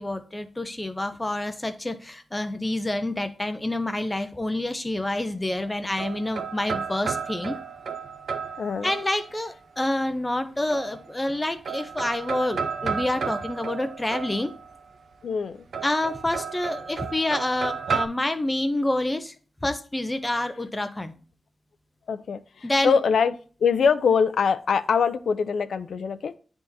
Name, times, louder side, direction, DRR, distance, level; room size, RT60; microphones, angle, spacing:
voice 1, 0.0-7.6 8.8-14.5 15.8-19.3 19.6-21.1 22.6-23.0, left 1 dB, 15° left, 8 dB, 0.5 m, -28 dB
sound 1, 5.5-9.5 10.7-11.4 11.6-14.8 15.7-18.1, right 6 dB, 80° right, 0.6 m, -32 dB
voice 2, 8.6-8.9 15.2-15.6 22.1-23.3 23.6-26.3, left 6 dB, 80° left, 10 dB, 0.4 m, -23 dB
10.5 x 3.5 x 2.6 m, 0.39 s
wide cardioid pair, 160°, 0 cm